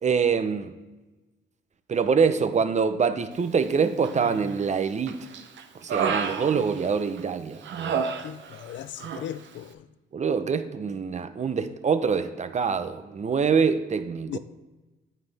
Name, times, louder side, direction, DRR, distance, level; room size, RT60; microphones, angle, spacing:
voice 1, 0.0-0.7 1.9-5.3 5.8-8.0 10.1-14.4, right 6 dB, 35° right, 0.7 m, -25 dB
Human voice, 4.0-4.6 5.1-7.2 7.6-8.7 9.0-9.3, right 6 dB, 70° right, 0.8 m, -31 dB
voice 2, 8.2-9.9 14.3-14.4, left 11 dB, 70° left, 0.5 m, -38 dB
9.1 x 8.1 x 3.4 m
cardioid pair, 90°, 20 cm